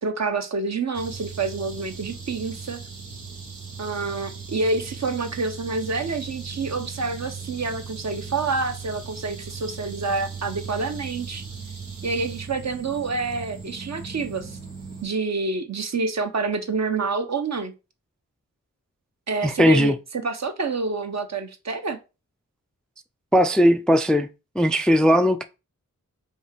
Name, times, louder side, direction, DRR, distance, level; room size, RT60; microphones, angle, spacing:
voice 1, 0.0-2.8 3.8-11.4 12.0-14.6 15.0-17.7 19.3-22.0, right 3 dB, 50° right, 0.8 m, -28 dB
sound 1, 0.9-15.0, right 5 dB, 90° right, 1.1 m, -38 dB
voice 2, 19.4-20.0 23.3-24.3 24.6-25.4, equal, ahead, 0.3 m, -18 dB
5.2 x 2.3 x 3.3 m
cardioid pair, 45°, 33 cm